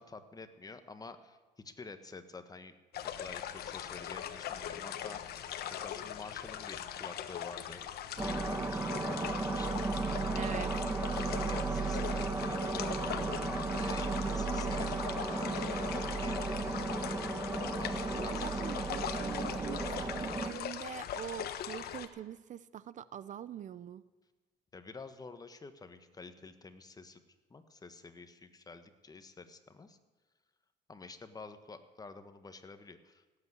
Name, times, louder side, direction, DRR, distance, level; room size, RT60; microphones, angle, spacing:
voice 1, 0.0-1.4 1.6-2.7 3.1-7.8 8.1-10.4 11.1-13.0 13.3-16.8 17.6-18.9 24.7-27.2 27.5-30.0 30.9-33.2, left 3 dB, 20° left, 9 dB, 1.4 m, -49 dB
sound 1, 2.9-22.1, left 10 dB, 70° left, 1.2 m, -41 dB
sound 2, 8.2-20.5, right 3 dB, 15° right, 1.3 m, -34 dB
voice 2, 10.4-10.8 18.1-24.0, right 9 dB, 45° right, 17 dB, 0.6 m, -44 dB
17.0 x 8.6 x 9.8 m, 1.3 s
cardioid pair, 110°, 17 cm